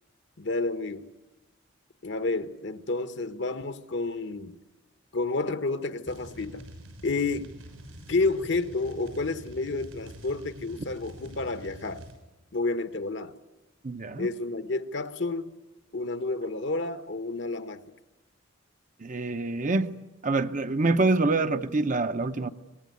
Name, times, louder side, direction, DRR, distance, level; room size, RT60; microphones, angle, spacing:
voice 1, 0.4-1.1 2.0-4.6 5.1-6.6 7.0-7.5 8.1-12.0 12.5-13.3 14.1-15.6 15.9-17.8, left 3 dB, 60° left, 1.1 m, -30 dB
sound 1, 6.1-12.2, equal, 90° right, 6.7 m, -46 dB
voice 2, 13.8-14.3 19.0-20.0 20.2-22.5, right 3 dB, 40° right, 0.8 m, -26 dB
24.0 x 20.0 x 9.4 m
head